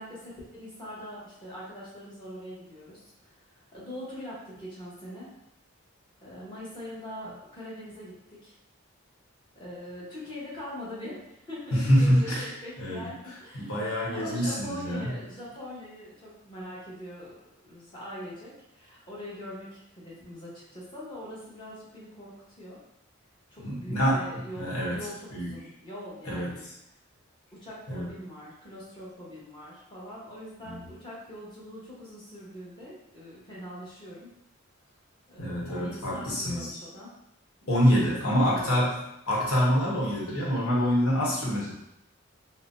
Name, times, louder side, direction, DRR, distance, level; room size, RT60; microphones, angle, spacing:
voice 1, 0.0-5.3 6.2-8.5 9.5-22.8 23.5-26.6 27.5-34.3 35.3-37.1 37.6-37.9 38.2-38.9, left 1 dB, 20° left, -8 dB, 1.0 m, -42 dB
voice 2, 11.7-12.5 12.8-13.1 13.5-15.1 23.6-24.3 24.5-25.5 26.2-26.5 27.9-28.1 30.6-30.9 35.4-36.8 37.7-38.9 39.3-41.7, equal, 85° left, -5 dB, 1.0 m, -26 dB
3.9 x 2.0 x 2.6 m, 0.80 s
head